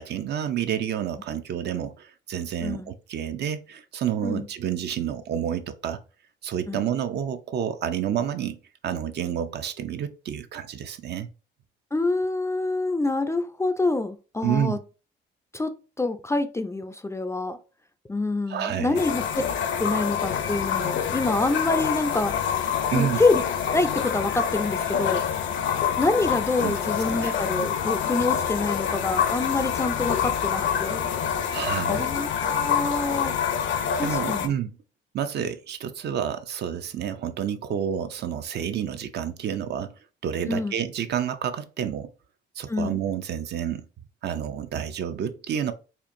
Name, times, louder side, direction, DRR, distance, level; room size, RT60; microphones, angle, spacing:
voice 1, 0.0-6.0 6.4-8.6 8.8-11.3 14.4-14.8 18.5-19.0 22.9-23.2 26.6-26.9 27.2-27.4 31.5-32.1 34.0-34.7 35.1-39.9 40.2-42.1 42.6-43.8 44.2-45.7, right 9 dB, 60° right, 0.5 m, -29 dB
voice 2, 11.9-14.8 15.5-17.6 18.1-19.2 19.8-22.3 22.9-23.4 23.7-25.2 26.0-31.1 31.9-33.3 34.0-34.5 40.5-40.7 42.7-43.0, left 2 dB, 15° left, 0.3 m, -26 dB
sound 1, 18.9-34.5, left 8 dB, 70° left, 0.6 m, -26 dB
4.3 x 2.5 x 2.5 m
cardioid pair, 90°, 20 cm